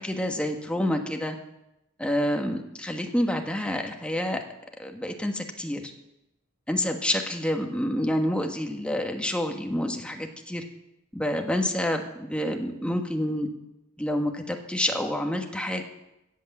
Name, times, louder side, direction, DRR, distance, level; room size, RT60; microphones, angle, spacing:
voice 1, 0.0-1.4 2.0-4.4 4.8-5.8 6.7-10.6 11.1-13.5 14.0-15.8, left 1 dB, 5° left, 3 dB, 1.4 m, -28 dB
16.5 x 8.4 x 7.2 m, 0.89 s
head